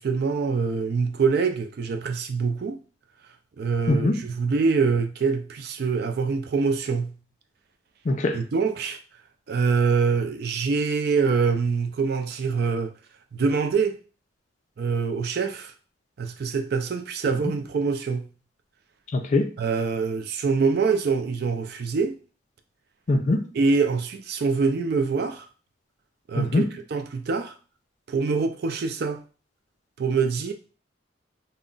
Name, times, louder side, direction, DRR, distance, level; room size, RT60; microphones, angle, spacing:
voice 1, 0.0-2.8 3.6-7.2 8.3-9.0 9.5-12.9 13.3-14.0 14.8-15.7 16.2-18.3 19.6-22.2 23.5-25.5 26.3-27.5 28.1-29.2 30.0-30.5, right 5 dB, 55° right, 0.4 m, -24 dB
voice 2, 3.9-4.2 8.1-8.4 19.1-19.5 23.1-23.5 26.4-26.7, left 2 dB, 40° left, 0.4 m, -22 dB
2.3 x 2.0 x 3.7 m
head